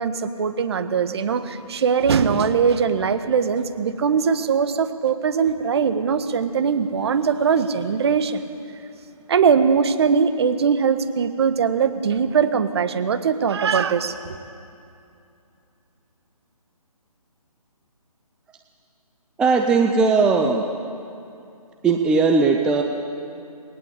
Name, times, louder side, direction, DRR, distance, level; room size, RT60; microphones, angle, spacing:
voice 1, 0.0-8.4 9.3-14.4, right 6 dB, 45° right, 9 dB, 1.6 m, -21 dB
voice 2, 19.4-20.6 21.8-22.8, right 4 dB, 5° right, 3 dB, 0.6 m, -18 dB
27.5 x 20.5 x 8.3 m, 2.6 s
figure-of-eight pair, 155°, 20 cm